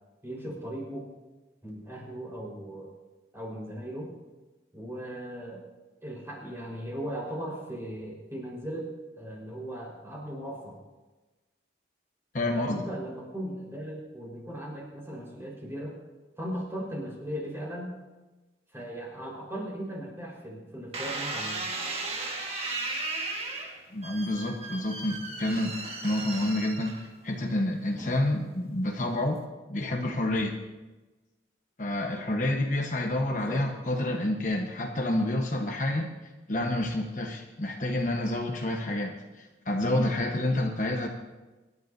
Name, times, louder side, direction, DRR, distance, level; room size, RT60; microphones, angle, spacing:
voice 1, 0.2-1.1 1.6-2.9 3.3-4.1 4.7-5.6 6.0-10.8 12.5-16.0 16.4-17.9 18.7-21.6 33.3-33.7, equal, 15° right, -4 dB, 4.4 m, -38 dB
voice 2, 12.3-12.8 23.9-25.7 26.0-27.0 27.2-29.4 29.7-30.5 31.8-36.1 36.5-41.1, left 1 dB, 45° left, 2 dB, 1.1 m, -28 dB
sound 1, 20.9-27.3 28.0-28.4, right 3 dB, 35° right, 1.7 m, -35 dB
26.0 x 11.0 x 2.7 m, 1.2 s
head